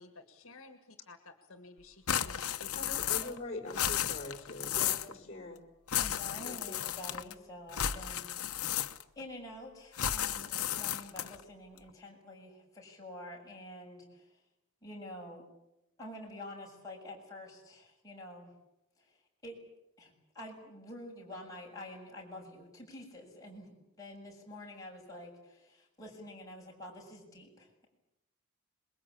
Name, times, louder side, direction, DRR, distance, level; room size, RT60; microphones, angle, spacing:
voice 1, 0.0-3.0, left 3 dB, 65° left, 8 dB, 2.0 m, -53 dB
sound 1, 2.1-3.4 3.7-5.1 5.9-7.3 7.7-9.2 9.9-11.4, left 10 dB, 90° left, 1.1 m, -34 dB
voice 2, 2.7-5.6 6.4-6.8, left 2 dB, 30° left, 6 dB, 5.3 m, -43 dB
voice 3, 6.0-8.7 9.2-14.4 14.8-15.4 16.0-18.5 19.0-19.2 19.4-19.6 20.0-23.7 24.0-27.9, left 1 dB, 15° left, -2 dB, 7.2 m, -48 dB
26.5 x 22.5 x 8.6 m, 0.88 s
head